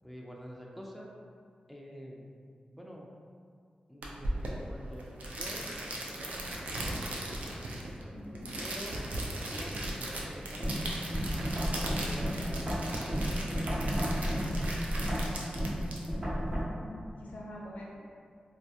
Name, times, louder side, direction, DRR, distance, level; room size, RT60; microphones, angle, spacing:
voice 1, 0.0-1.1 1.7-2.2 2.7-3.1 3.9-5.1 5.3-7.0 8.6-9.1 9.5-10.9 11.7-15.2, equal, ahead, -2 dB, 0.3 m, -48 dB
sound 1, 4.0-16.6, right 1 dB, 80° right, 0.4 m, -38 dB
voice 2, 8.1-8.5 16.6-18.1, left 1 dB, 80° left, -3 dB, 0.4 m, -45 dB
sound 2, 10.6-16.6, equal, 35° right, 0.7 m, -32 dB
2.3 x 2.2 x 2.7 m, 2.3 s
wide cardioid pair, 95°, 3 cm